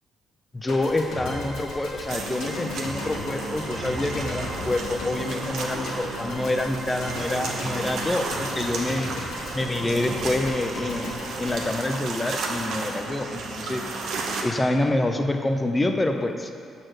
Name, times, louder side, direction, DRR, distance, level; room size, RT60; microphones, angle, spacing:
voice 1, 0.5-9.1 9.5-13.8 14.4-16.5, left 2 dB, 20° left, 6 dB, 0.6 m, -27 dB
sound 1, 0.7-12.9, left 1 dB, 90° left, 1.5 m, -35 dB
sound 2, 2.1-14.4, right 3 dB, 75° right, 0.9 m, -33 dB
6.4 x 4.2 x 6.3 m, 2.3 s
cardioid pair, 90°, 0 cm